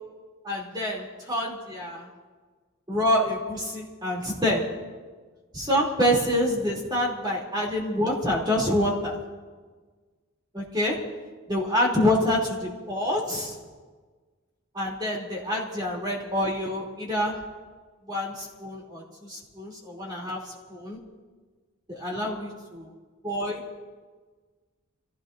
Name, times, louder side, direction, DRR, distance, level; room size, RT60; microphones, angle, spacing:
voice 1, 0.4-2.1 2.9-4.6 5.5-9.2 10.5-11.0 11.5-13.5 14.7-17.3 18.1-21.0 21.9-22.9 23.2-23.6, left 1 dB, 20° right, -3 dB, 3.2 m, -27 dB
30.0 x 16.5 x 2.7 m, 1.4 s
head